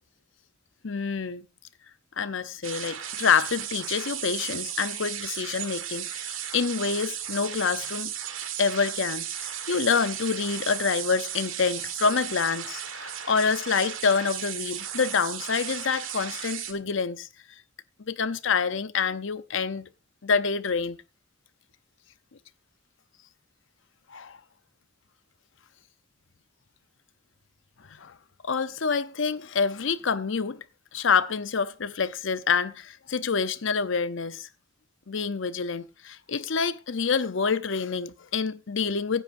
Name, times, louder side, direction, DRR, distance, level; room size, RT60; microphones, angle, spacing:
voice 1, 0.8-1.4 2.2-8.1 8.6-17.3 18.0-19.8 20.2-21.0 24.1-24.4 28.0-28.1 28.4-30.6 30.9-34.5 35.1-39.2, left 5 dB, 70° left, 0.7 m, -27 dB
sound 1, 2.6-16.7, right 10 dB, 85° right, 1.7 m, -35 dB
16.0 x 10.0 x 2.6 m
head